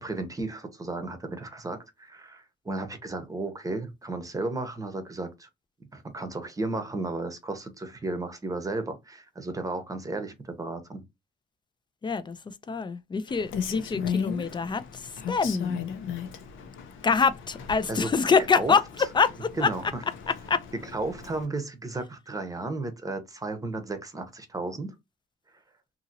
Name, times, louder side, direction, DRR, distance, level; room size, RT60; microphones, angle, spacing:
voice 1, 0.0-5.5 5.9-11.0 17.9-18.1 18.6-18.7 19.6-20.0 20.9-24.9, right 2 dB, 15° right, 0.8 m, -34 dB
voice 2, 12.0-15.8 17.0-19.7 20.3-20.6, left 5 dB, 25° left, 0.4 m, -25 dB
Rain, 13.3-21.5, left 7 dB, 75° left, 0.7 m, -36 dB
2.7 x 2.7 x 2.6 m
cardioid pair, 90°, 20 cm